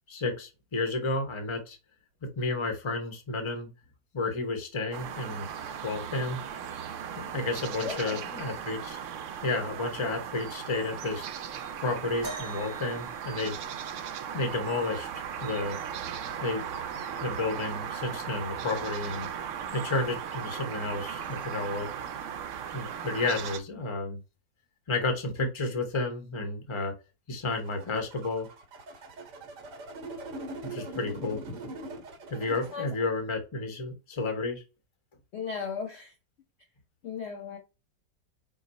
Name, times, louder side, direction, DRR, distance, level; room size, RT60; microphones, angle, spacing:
voice 1, 0.1-1.8 2.2-3.7 4.1-5.5 5.8-6.4 7.2-9.0 9.4-11.3 11.8-13.6 14.3-15.1 15.4-15.8 16.4-16.6 17.2-19.3 19.7-21.9 22.7-24.2 24.9-26.9 27.3-28.5 30.6-31.4 32.3-34.6, left 3 dB, 25° left, 0.6 m, -31 dB
sound 1, 4.9-23.6, right 8 dB, 90° right, 0.6 m, -37 dB
voice 2, 7.8-8.3 32.7-32.9 35.3-36.1 37.0-37.6, left 6 dB, 75° left, 0.6 m, -36 dB
sound 2, 12.2-14.1 15.8-15.9 16.7-16.9 17.8-17.9, right 2 dB, 50° right, 1.6 m, -43 dB
sound 3, 27.5-32.8, right 2 dB, 75° right, 1.5 m, -42 dB
4.9 x 2.1 x 4.0 m
omnidirectional pair, 1.9 m